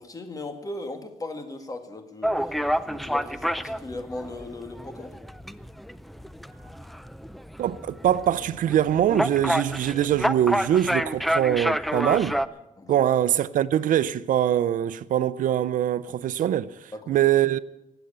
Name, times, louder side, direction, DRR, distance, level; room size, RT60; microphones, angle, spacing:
voice 1, 0.0-2.5 2.8-5.2 12.8-13.0 16.9-17.3, left 2 dB, 25° left, 2.0 m, -38 dB
sound 1, 2.2-12.5, equal, ahead, 0.5 m, -29 dB
voice 2, 7.6-12.4 12.9-16.7 17.1-17.6, right 11 dB, 85° right, 0.6 m, -23 dB
18.5 x 8.0 x 8.8 m
cardioid pair, 110°, 13 cm